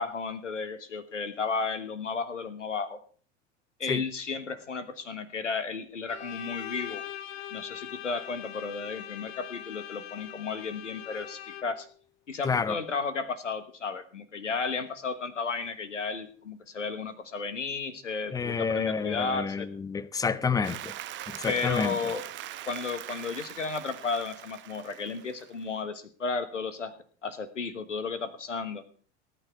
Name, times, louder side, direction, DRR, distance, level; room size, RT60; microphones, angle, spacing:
voice 1, 0.0-3.0 3.8-7.0 7.5-11.9 12.3-19.7 21.4-22.2 22.7-26.9 27.2-28.8, left 4 dB, 80° left, 1.4 m, -33 dB
Bowed string instrument, 6.1-11.9, left 11 dB, 55° left, 1.1 m, -42 dB
voice 2, 12.4-12.8 18.3-20.9 21.3-22.0, left 5 dB, 10° left, 0.5 m, -29 dB
Applause, 20.6-25.7, right 14 dB, 30° right, 0.9 m, -41 dB
18.0 x 9.6 x 4.6 m
figure-of-eight pair, 80°, 36 cm